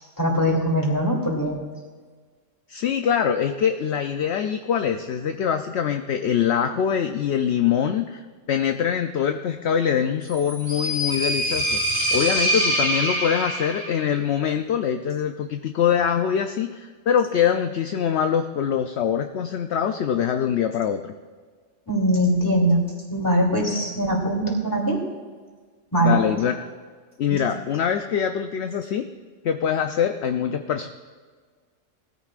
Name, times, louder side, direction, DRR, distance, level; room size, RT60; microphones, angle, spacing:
voice 1, 0.2-1.6 21.9-22.8 23.1-25.0 25.9-26.2 27.3-27.4, equal, 15° left, -1 dB, 2.8 m, -21 dB
voice 2, 2.7-8.2 8.5-11.8 12.1-21.1 26.0-26.6 27.2-29.1 29.4-30.9, left 8 dB, 60° left, 6 dB, 0.8 m, -23 dB
sound 1, 10.3-14.0, equal, 25° right, 1.5 m, -24 dB
20.0 x 14.5 x 2.5 m, 1.5 s
omnidirectional pair, 1.3 m